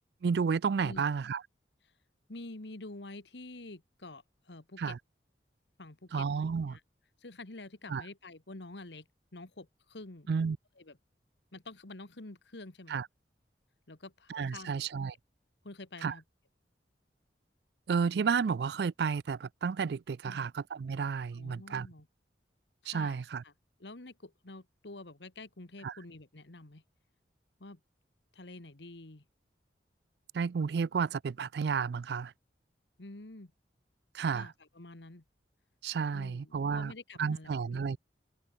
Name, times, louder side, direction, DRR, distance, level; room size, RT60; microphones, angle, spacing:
voice 1, 0.2-1.4 4.8-5.0 6.1-6.8 7.9-8.0 10.3-10.6 12.9-13.1 14.3-15.1 16.0-16.2 17.9-21.9 22.9-23.4 25.8-25.9 30.3-32.3 34.1-34.5 35.8-36.9 37.2-38.0, right 5 dB, 65° right, 0.4 m, -31 dB
voice 2, 2.3-5.0 5.8-6.8 7.2-10.3 10.8-11.0 11.5-13.0 13.9-14.9 15.6-16.2 20.2-20.5 21.3-22.1 22.9-23.5 23.8-26.8 27.6-27.8 28.3-29.2 33.0-33.5 34.3-35.2 36.1-38.0, left 2 dB, 75° left, 1.8 m, -48 dB
open air
head